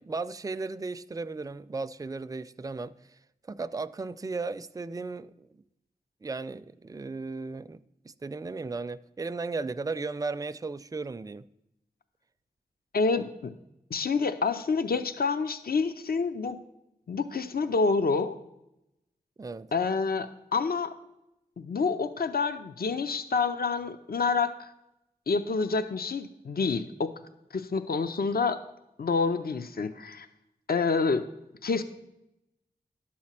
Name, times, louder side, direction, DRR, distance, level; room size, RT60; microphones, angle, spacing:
voice 1, 0.0-3.2 3.4-5.5 6.2-7.8 8.0-11.5 19.4-19.7, right 3 dB, 20° right, 0.4 m, -35 dB
voice 2, 12.9-13.5 13.9-16.6 17.1-18.4 19.7-20.9 21.6-24.7 25.3-27.1 27.5-28.6 29.0-30.3 30.7-31.2 31.6-31.8, left 4 dB, 75° left, 0.6 m, -28 dB
11.5 x 4.3 x 7.3 m
cardioid pair, 40°, 16 cm